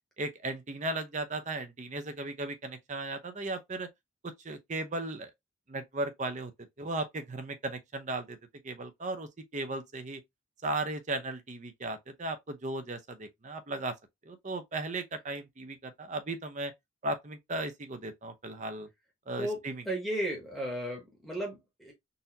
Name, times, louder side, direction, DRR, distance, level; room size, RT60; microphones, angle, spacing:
voice 1, 0.2-3.9 4.2-5.3 5.7-6.5 6.8-8.4 8.6-10.2 10.6-13.9 14.3-16.7 17.0-18.9 19.3-19.8, right 2 dB, 35° right, 0.6 m, -36 dB
voice 2, 19.4-21.9, right 1 dB, ahead, 1.0 m, -35 dB
4.0 x 2.6 x 2.7 m
head